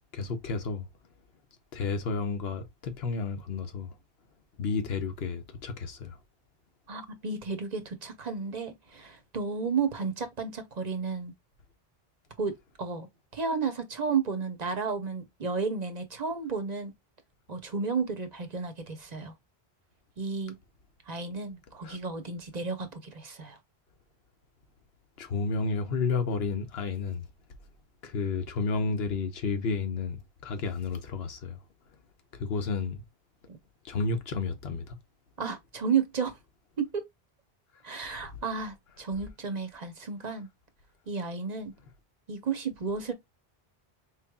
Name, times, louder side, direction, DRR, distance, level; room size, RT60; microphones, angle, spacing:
voice 1, 0.1-0.9 1.7-3.9 4.6-6.2 21.8-22.0 25.2-27.2 28.0-31.6 32.4-33.0 33.8-34.9, left 4 dB, 75° left, 1.0 m, -31 dB
voice 2, 6.9-11.3 12.4-12.5 12.8-13.1 13.3-16.9 17.5-19.3 20.2-20.6 21.1-23.6 33.5-33.6 35.4-36.4 36.8-37.0 37.8-40.5 41.1-41.7 42.3-43.1, right 5 dB, 45° right, 0.8 m, -32 dB
4.1 x 3.2 x 2.2 m
omnidirectional pair, 1.0 m